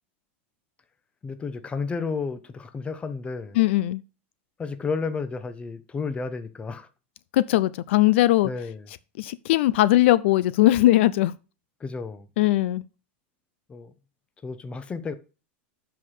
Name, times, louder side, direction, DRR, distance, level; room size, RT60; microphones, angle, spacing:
voice 1, 1.2-3.6 4.6-6.9 8.4-8.9 11.8-12.3 13.7-13.9 14.4-15.1, left 4 dB, 15° left, 0.9 m, -32 dB
voice 2, 3.6-4.0 7.3-8.5 9.2-11.3 12.4-12.8, left 16 dB, 70° left, 0.5 m, -20 dB
7.5 x 5.8 x 4.9 m
supercardioid pair, 135°, 7 cm